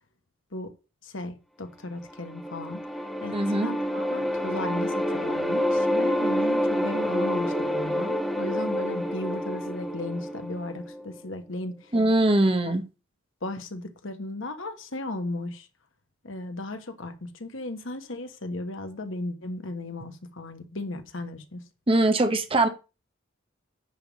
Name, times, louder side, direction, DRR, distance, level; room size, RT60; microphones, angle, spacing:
voice 1, 1.0-2.8 3.2-11.9 12.7-12.8 13.4-15.7 16.2-21.7, left 1 dB, 75° left, 1.3 m, -35 dB
sound 1, 2.0-11.2, equal, ahead, 1.6 m, -28 dB
voice 2, 3.3-3.7 11.9-12.8 21.9-22.7, right 2 dB, 30° right, 1.1 m, -22 dB
10.0 x 3.6 x 7.3 m
head